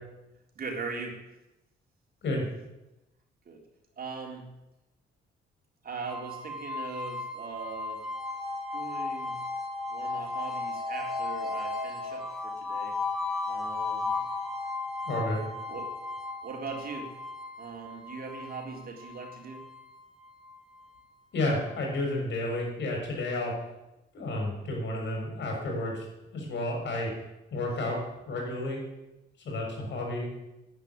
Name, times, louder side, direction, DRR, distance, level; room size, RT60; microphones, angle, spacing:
voice 1, 0.5-1.2 3.5-3.6 4.0-4.5 5.8-8.0 8.7-9.4 9.9-12.9 13.5-14.1 15.7-15.9 16.4-17.1 17.6-19.6, right 4 dB, 50° right, 1 dB, 3.7 m, -40 dB
sound 1, 6.1-21.0, left 3 dB, ahead, 4.7 m, -35 dB
voice 2, 15.0-15.4 21.3-23.5 24.1-26.0 26.3-27.1 27.5-28.0 28.2-28.8 29.4-30.3, left 1 dB, 65° left, 0 dB, 6.6 m, -31 dB
11.5 x 9.8 x 9.6 m, 0.97 s
cardioid pair, 90°, 20 cm